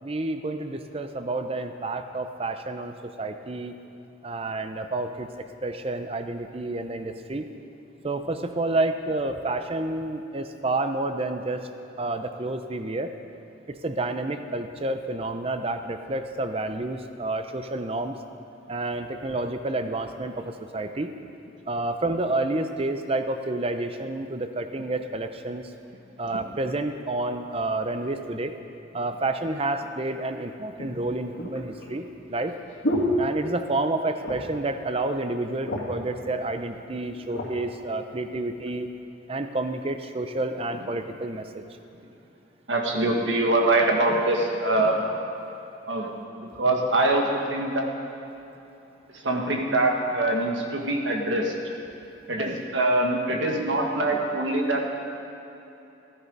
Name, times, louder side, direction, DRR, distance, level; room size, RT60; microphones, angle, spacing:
voice 1, 0.0-3.7 4.2-5.3 5.6-7.4 8.0-11.6 12.0-13.1 13.7-18.2 18.7-21.1 21.7-25.7 26.2-28.5 28.9-32.5 33.2-38.9 39.3-41.6 52.4-52.6, right 2 dB, 30° right, 8 dB, 0.6 m, -29 dB
sound 1, 29.8-29.9 30.8-33.9 34.2-34.6 35.0-35.1 35.4-36.1 36.8-37.5 38.2-38.4, left 1 dB, 75° left, 2.2 m, -31 dB
voice 2, 42.7-45.0 45.9-46.1 46.4-47.8 49.2-51.5 52.3-54.9, right 2 dB, 75° right, 1 dB, 1.6 m, -24 dB
14.5 x 9.8 x 5.4 m, 2.9 s
head